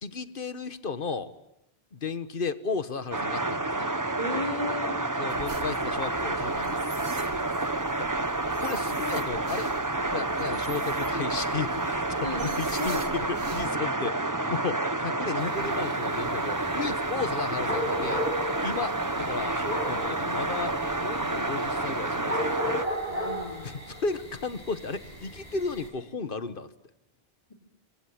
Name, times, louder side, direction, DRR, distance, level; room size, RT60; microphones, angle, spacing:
voice 1, 0.0-1.3 1.9-3.9 5.2-6.8 8.0-8.1 8.6-9.7 10.1-18.3 18.6-22.6 23.6-26.7, left 4 dB, 55° left, 12 dB, 1.5 m, -34 dB
sound 1, 3.1-22.9, right 2 dB, 20° right, 1.1 m, -29 dB
voice 2, 4.2-5.0 7.2-7.5 12.2-13.1 23.1-23.8, left 2 dB, 35° left, 3 dB, 3.7 m, -35 dB
sound 2, 5.3-13.7, right 3 dB, 80° right, 2.5 m, -44 dB
sound 3, 15.4-25.9, equal, 35° right, 6.6 m, -36 dB
27.0 x 24.0 x 8.7 m, 0.86 s
omnidirectional pair, 1.1 m